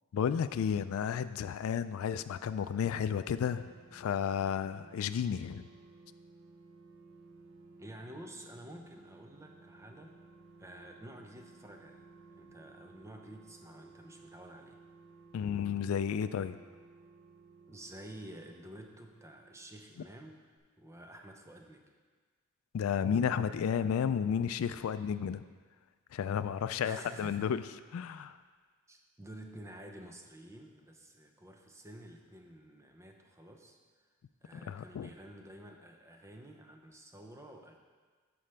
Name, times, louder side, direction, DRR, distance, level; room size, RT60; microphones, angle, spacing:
voice 1, 0.1-5.7 15.3-16.6 22.7-25.4 26.1-27.6 27.9-28.4 34.7-35.1, left 7 dB, 80° left, 12 dB, 0.3 m, -32 dB
sound 1, 2.1-20.3 20.6-20.7, right 3 dB, 65° right, 0.7 m, -58 dB
voice 2, 7.8-10.2 10.6-14.8 17.7-21.9 26.8-27.5 28.9-33.8 34.4-37.8, right 1 dB, 15° right, 3 dB, 0.6 m, -50 dB
13.0 x 4.9 x 3.4 m, 1.5 s
head